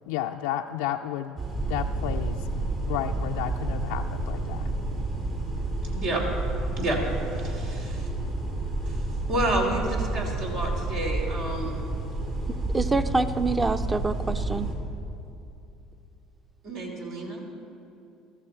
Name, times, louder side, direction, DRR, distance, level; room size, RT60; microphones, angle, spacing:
voice 1, 0.1-1.4 1.7-2.5 2.9-4.8, left 11 dB, 80° left, 5 dB, 0.3 m, -32 dB
sound 1, 1.4-14.7, right 2 dB, 55° right, 3.7 m, -30 dB
voice 2, 7.3-8.1 8.8-9.0 9.3-11.8 16.6-17.4, right 1 dB, 75° right, -1 dB, 3.2 m, -30 dB
voice 3, 12.7-14.7, right 3 dB, 20° right, 11 dB, 0.7 m, -26 dB
14.0 x 13.5 x 4.5 m, 2.8 s
hypercardioid pair, 75°, 0 cm